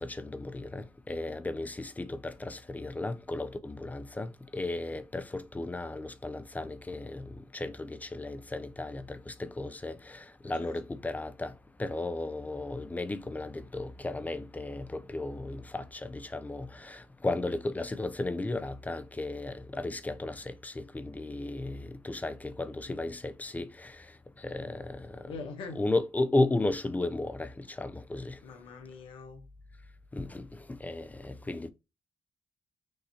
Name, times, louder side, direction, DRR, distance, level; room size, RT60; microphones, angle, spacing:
voice 1, 0.0-11.5 11.8-24.0 24.4-25.2 25.7-28.4 30.1-31.7, left 2 dB, 20° left, 0.5 m, -34 dB
voice 2, 25.3-25.8 28.4-29.4, left 4 dB, 85° left, 1.0 m, -43 dB
6.4 x 2.7 x 2.8 m
supercardioid pair, 65°, 9 cm